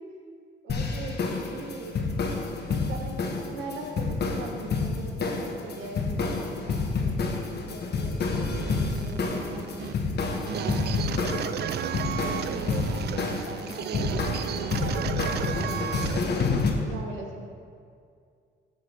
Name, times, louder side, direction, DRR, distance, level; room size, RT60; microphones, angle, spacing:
voice 1, 0.6-2.0 2.5-11.5 12.1-17.5, right 3 dB, 80° right, 0 dB, 1.8 m, -40 dB
sound 1, 0.7-16.7, left 4 dB, 55° left, 1.3 m, -29 dB
sound 2, 8.5-16.5, right 9 dB, 55° right, 0.4 m, -33 dB
15.5 x 6.7 x 3.4 m, 2.2 s
cardioid pair, 90°, 20 cm